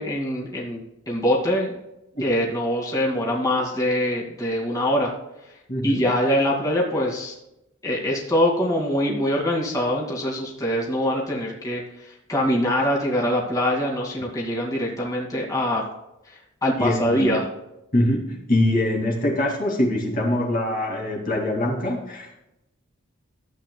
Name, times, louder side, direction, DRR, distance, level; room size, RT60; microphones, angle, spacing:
voice 1, 0.0-1.8 2.2-5.1 5.8-7.3 7.8-15.9 16.3-17.5, equal, 15° left, -3 dB, 2.3 m, -24 dB
voice 2, 5.7-6.0 16.8-17.4 17.9-22.4, left 1 dB, 40° left, -2 dB, 2.4 m, -23 dB
14.5 x 8.6 x 2.3 m, 0.89 s
head